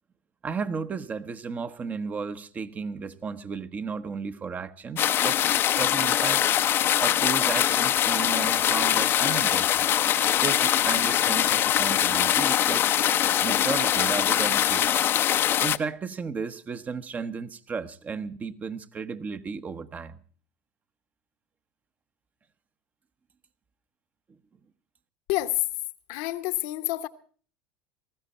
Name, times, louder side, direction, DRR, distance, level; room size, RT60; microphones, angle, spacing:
voice 1, 0.4-5.4 5.7-6.4 7.0-9.9 10.4-13.0 13.4-14.9 15.6-20.2, right 5 dB, 30° right, 1.1 m, -34 dB
sound 1, 5.0-15.8, left 11 dB, 45° left, 0.7 m, -23 dB
voice 2, 25.3-25.6 26.1-27.1, left 18 dB, 70° left, 1.1 m, -28 dB
19.0 x 15.0 x 4.2 m
hypercardioid pair, 90°, 5 cm